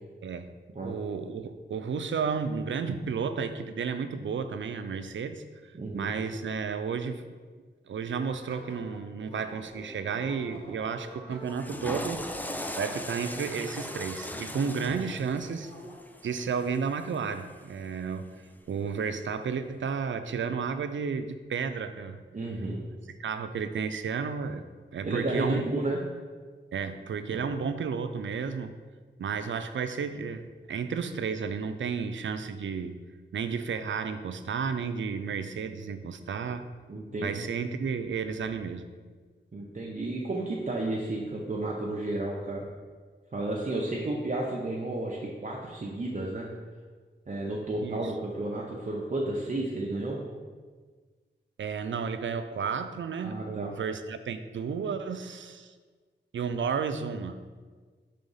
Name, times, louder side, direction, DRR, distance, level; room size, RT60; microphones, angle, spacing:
voice 1, 0.8-5.4 5.9-7.2 7.9-12.2 12.8-15.7 16.2-18.3 18.7-22.2 23.2-24.6 24.9-25.6 26.7-28.7 29.2-33.0 33.3-36.7 37.2-38.8 47.8-48.1 51.6-55.7 56.3-57.4, right 6 dB, 75° right, 10 dB, 0.4 m, -32 dB
voice 2, 5.7-6.1 22.3-22.8 25.0-26.0 27.3-27.5 36.9-37.4 39.5-42.7 43.3-46.5 47.3-50.2 53.2-53.7, right 2 dB, 40° right, -3 dB, 0.7 m, -32 dB
sound 1, 8.1-16.3, equal, 25° left, 1.4 m, -48 dB
Water / Toilet flush, 11.4-17.7, left 1 dB, 10° left, 0.3 m, -39 dB
5.3 x 3.5 x 5.5 m, 1.5 s
wide cardioid pair, 105°, 20 cm